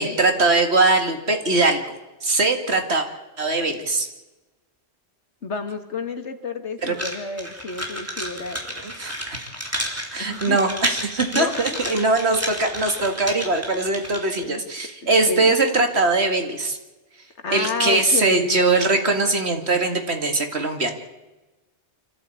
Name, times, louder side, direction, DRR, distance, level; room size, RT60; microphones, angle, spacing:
voice 1, 0.0-1.8 2.2-3.1 3.4-4.1 6.8-7.0 8.8-9.4 10.1-16.8 17.5-20.9, right 3 dB, 70° right, 5 dB, 2.4 m, -21 dB
voice 2, 5.4-8.8 10.2-10.6 11.3-12.0 13.3-13.4 14.4-14.6 15.0-15.5 17.4-18.6, left 4 dB, 85° left, 7 dB, 2.1 m, -30 dB
sound 1, 6.9-14.4, equal, 15° right, 3.4 m, -31 dB
26.0 x 14.5 x 8.5 m, 1.1 s
omnidirectional pair, 1.1 m